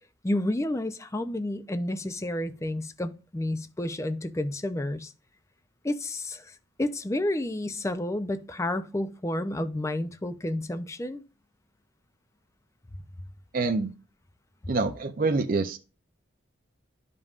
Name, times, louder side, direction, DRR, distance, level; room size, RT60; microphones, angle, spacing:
voice 1, 0.2-5.1 5.8-11.2, left 1 dB, 15° left, 0.4 m, -30 dB
voice 2, 13.5-13.9 14.7-15.8, right 3 dB, 45° right, 0.5 m, -26 dB
11.0 x 5.3 x 2.4 m
head